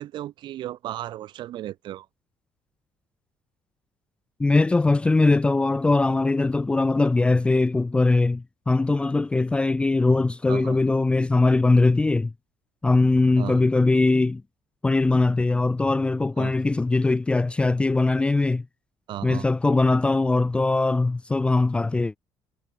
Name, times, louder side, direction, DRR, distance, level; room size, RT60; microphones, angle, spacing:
voice 1, 0.0-2.1 10.5-10.8 13.4-13.6 16.4-16.5 19.1-19.5, right 13 dB, 65° right, 2.4 m, -35 dB
voice 2, 4.4-12.3 12.8-14.4 14.8-18.7 19.2-22.2, left 3 dB, 10° left, 0.5 m, -21 dB
cardioid pair, 140°, 9 cm